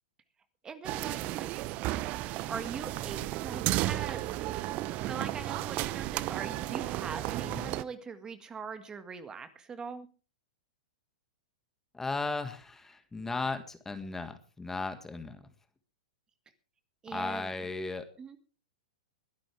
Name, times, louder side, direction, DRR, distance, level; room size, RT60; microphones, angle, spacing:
voice 1, 0.6-1.5 2.5-4.6 5.1-10.1 17.0-17.5 18.2-18.4, right 5 dB, 20° right, 10 dB, 1.7 m, -41 dB
sound 1, 0.8-7.8, right 16 dB, 40° right, 0.8 m, -33 dB
voice 2, 11.9-15.4 17.1-18.1, left 3 dB, 10° left, 9 dB, 1.7 m, -36 dB
22.0 x 11.5 x 3.4 m, 0.35 s
hypercardioid pair, 115°, 4 cm